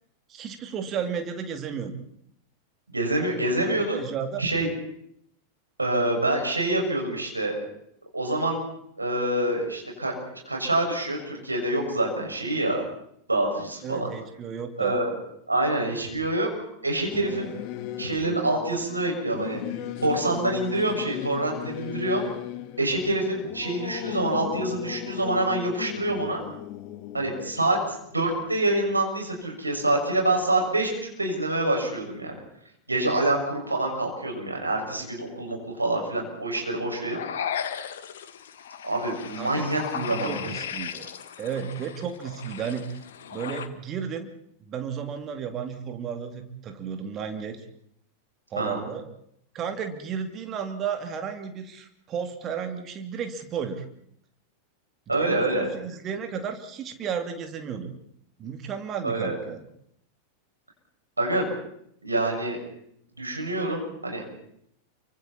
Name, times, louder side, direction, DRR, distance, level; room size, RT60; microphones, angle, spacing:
voice 1, 0.3-2.0 3.9-4.4 13.8-15.0 39.4-41.1 41.4-42.8 43.3-44.3 44.7-47.6 48.5-49.0 49.5-53.9 55.1-58.0 58.4-59.6, right 7 dB, 30° right, 6 dB, 2.8 m, -33 dB
voice 2, 2.9-4.0 4.4-4.7 5.8-7.6 8.1-8.6 9.0-12.8 13.3-14.1 14.8-15.1 15.5-16.5 16.8-17.5 18.0-19.6 20.0-22.3 22.8-26.4 27.1-27.8 28.1-30.9 31.2-32.4 32.9-37.2 38.8-40.5 48.6-48.8 55.1-55.7 59.0-59.4 61.2-61.5 62.0-62.6 63.1-64.2, right 2 dB, 80° right, 1 dB, 6.3 m, -26 dB
Singing / Musical instrument, 17.1-29.0, left 12 dB, 40° left, 1.5 m, -37 dB
sound 1, 37.0-43.7, left 8 dB, 60° left, 1.5 m, -36 dB
29.0 x 24.5 x 4.3 m, 0.72 s
figure-of-eight pair, 90°, 0 cm